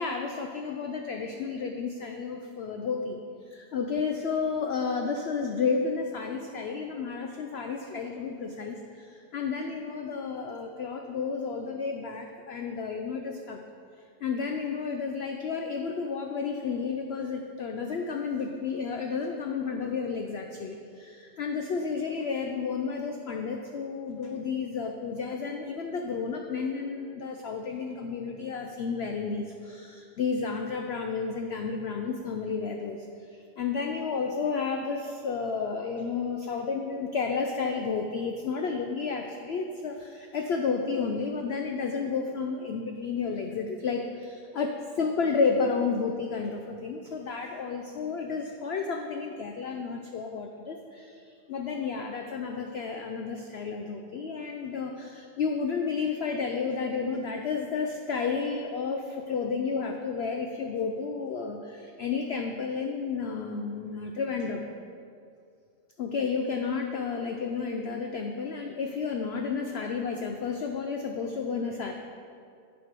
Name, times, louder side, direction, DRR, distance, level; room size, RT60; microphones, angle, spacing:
voice 1, 0.0-3.2 3.5-13.6 14.2-33.0 33.6-51.1 51.5-64.7 66.0-71.9, left 5 dB, 70° left, 3 dB, 0.6 m, -31 dB
9.8 x 5.0 x 5.1 m, 2.3 s
omnidirectional pair, 1.6 m